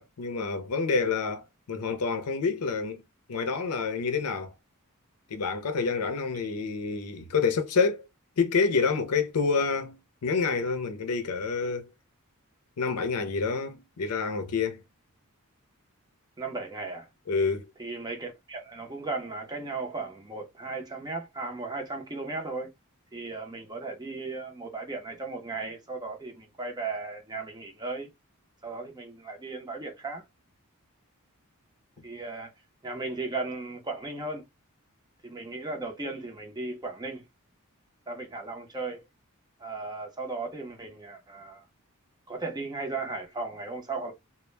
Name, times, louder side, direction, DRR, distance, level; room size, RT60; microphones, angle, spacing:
voice 1, 0.0-3.0 3.3-4.5 5.3-8.0 8.4-11.9 12.8-14.8 17.3-17.7, left 5 dB, 90° left, 0.5 m, -28 dB
voice 2, 16.4-17.1 17.8-22.7 23.1-28.1 28.6-30.2 32.0-32.5 32.8-34.4 35.2-37.2 38.1-39.0 39.6-41.7 42.3-44.1, right 3 dB, 20° right, 0.6 m, -36 dB
2.1 x 2.0 x 3.1 m
head